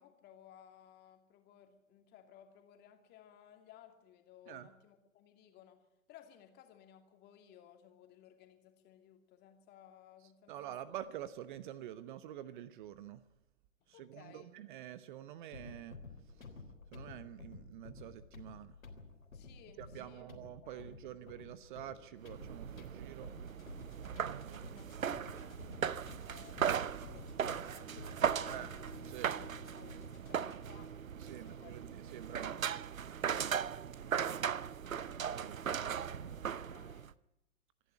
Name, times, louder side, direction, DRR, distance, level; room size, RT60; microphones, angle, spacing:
voice 1, 0.0-10.6 10.8-10.9 13.8-14.6 19.3-20.3 20.6-21.1 24.7-28.9 29.2-31.0 31.3-31.8 32.3-32.7 33.4-33.6 36.2-37.1, left 10 dB, 25° left, 5 dB, 2.8 m, -60 dB
voice 2, 10.5-13.2 13.9-16.0 16.3-16.5 16.9-18.8 19.8-23.3 24.4-24.9 28.4-28.8 29.0-29.3 31.2-32.6 33.2-33.6 35.2-36.1, right 11 dB, 40° right, 14 dB, 1.0 m, -48 dB
sound 1, 15.5-30.8, left 3 dB, 80° left, 3.8 m, -53 dB
sound 2, 22.2-37.1, right 8 dB, 80° right, 0.8 m, -38 dB
26.5 x 11.0 x 9.7 m, 0.89 s
figure-of-eight pair, 120°, 40 cm